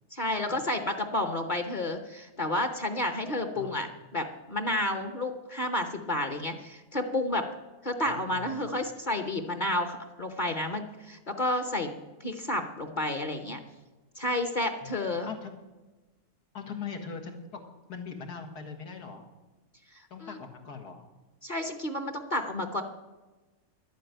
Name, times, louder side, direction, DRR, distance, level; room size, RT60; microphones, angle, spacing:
voice 1, 0.1-7.5 7.8-11.9 12.2-13.6 14.2-15.3 20.2-20.4 21.4-22.8, left 1 dB, 35° left, 6 dB, 0.9 m, -31 dB
voice 2, 3.6-3.9 8.1-8.8 14.8-14.9 15.2-15.5 16.5-17.6 17.9-19.2 20.1-21.0, left 5 dB, 90° left, 4 dB, 2.2 m, -41 dB
12.0 x 8.9 x 9.1 m, 1.2 s
omnidirectional pair, 1.6 m